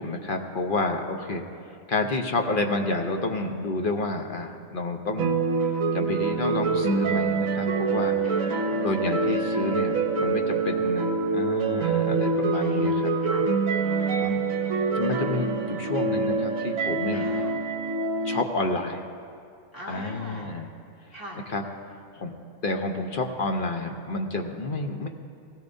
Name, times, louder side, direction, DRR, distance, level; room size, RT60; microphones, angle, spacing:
voice 1, 0.0-1.4 1.9-5.4 5.9-8.1 8.8-13.0 14.2-14.4 14.9-17.3 18.2-19.0 19.9-20.7 21.5-21.6 22.1-22.3 22.6-25.1, left 2 dB, 45° left, 4 dB, 0.8 m, -29 dB
sound 1, 5.2-18.4, right 4 dB, 65° right, 1.2 m, -25 dB
voice 2, 8.2-8.8 12.5-13.4 13.8-14.4 17.1-17.6 19.7-20.5 21.1-21.4, equal, 15° left, -6 dB, 2.7 m, -42 dB
17.0 x 16.5 x 2.7 m, 2.4 s
omnidirectional pair, 1.5 m